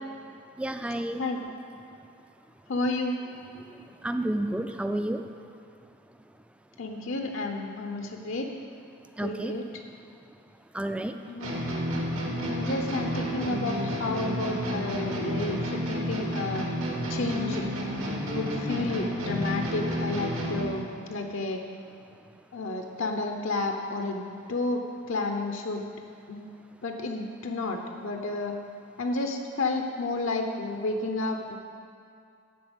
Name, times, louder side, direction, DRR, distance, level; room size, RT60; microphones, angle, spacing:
voice 1, 0.6-1.3 4.0-5.2 9.2-9.6 10.7-11.2, right 1 dB, 5° right, 7 dB, 0.3 m, -30 dB
voice 2, 2.7-3.1 6.8-8.5 9.2-9.6 11.3-11.6 12.4-16.7 17.1-17.6 18.3-21.6 22.5-24.2 24.5-24.8 25.1-25.8 26.3-26.5 26.8-28.5 29.0-31.6, left 2 dB, 70° left, 3 dB, 0.7 m, -31 dB
sound 1, 11.4-20.8, equal, 80° right, 1.8 m, -31 dB
13.0 x 4.4 x 8.0 m, 2.4 s
head